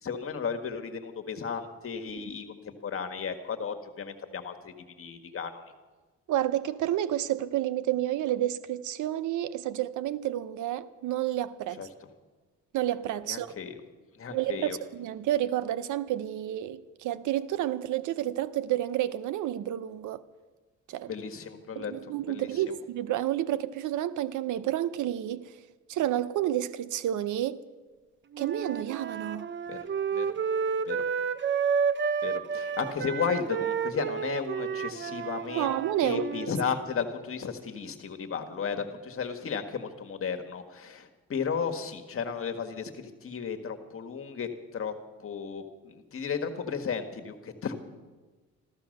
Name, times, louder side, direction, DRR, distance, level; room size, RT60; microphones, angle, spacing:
voice 1, 0.0-5.6 11.8-11.9 13.3-13.7 14.1-14.8 21.1-21.9 22.3-22.8 29.7-30.3 30.8-31.0 32.2-44.9 45.2-47.7, left 6 dB, 45° left, 1.7 m, -34 dB
voice 2, 6.3-11.8 12.7-13.6 14.3-20.2 20.9-21.1 21.8-25.5 25.9-27.6 28.4-29.5 35.5-36.2, right 12 dB, 80° right, 0.7 m, -30 dB
Wind instrument woodwind instrument, 28.3-36.5, right 6 dB, 40° right, 0.6 m, -31 dB
14.5 x 13.5 x 6.6 m
cardioid pair, 90°, 30 cm